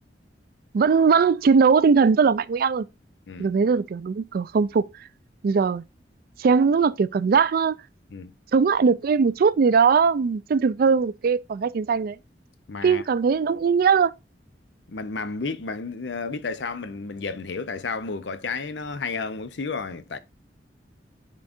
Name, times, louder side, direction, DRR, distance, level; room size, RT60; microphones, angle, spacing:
voice 1, 0.7-2.9 3.4-5.1 5.4-5.8 6.4-7.8 8.5-12.2 12.8-14.1, right 5 dB, 55° right, 0.3 m, -20 dB
voice 2, 12.7-13.0 14.9-20.2, left 4 dB, 85° left, 0.6 m, -32 dB
10.5 x 3.8 x 2.5 m
head